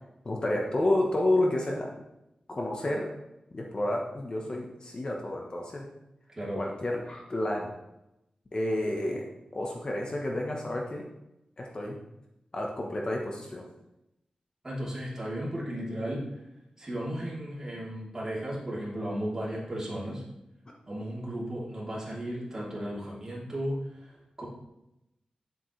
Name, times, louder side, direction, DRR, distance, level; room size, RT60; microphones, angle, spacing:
voice 1, 0.2-1.9 2.5-3.1 3.5-5.9 6.6-7.7 8.5-9.3 9.5-11.0 11.6-12.0 12.5-13.7, left 1 dB, 35° left, 0 dB, 1.1 m, -30 dB
voice 2, 6.3-6.6 14.6-16.4 16.8-20.2 20.9-24.4, equal, 25° right, -6 dB, 3.2 m, -35 dB
9.9 x 7.8 x 3.3 m, 0.88 s
wide cardioid pair, 125°, 2 cm